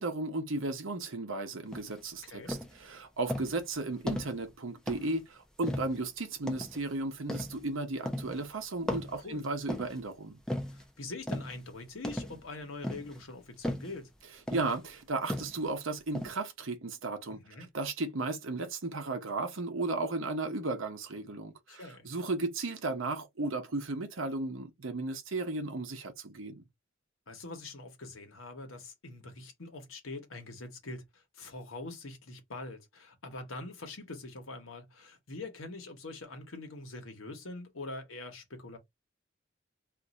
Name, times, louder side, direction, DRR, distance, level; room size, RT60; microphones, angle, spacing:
voice 1, 0.0-10.4 14.5-26.6, right 2 dB, 75° right, 0.8 m, -35 dB
sound 1, 1.7-2.0 2.5-2.8 3.3-3.6 4.1-4.4 4.9-5.2 5.6-6.0 6.5-6.8 7.3-7.7 8.1-8.4 8.9-10.0 10.5-10.8 11.3-11.6 12.0-12.5 12.8-13.2 13.6-14.0 14.5-14.8 15.3-15.7 16.1-16.3, left 1 dB, 5° left, 0.6 m, -36 dB
voice 2, 2.2-2.5 9.2-9.4 10.7-14.1 17.3-17.7 21.7-22.1 27.3-38.8, left 2 dB, 80° left, 1.1 m, -44 dB
2.5 x 2.4 x 4.0 m
head